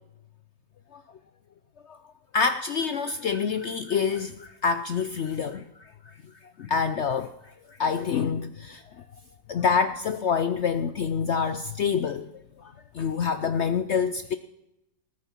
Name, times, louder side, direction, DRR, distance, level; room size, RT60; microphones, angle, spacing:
voice 1, 2.3-5.9 6.4-9.0 9.5-12.3 12.6-14.3, left 6 dB, 70° left, 0.6 m, -27 dB
20.0 x 9.3 x 4.4 m
omnidirectional pair, 1.8 m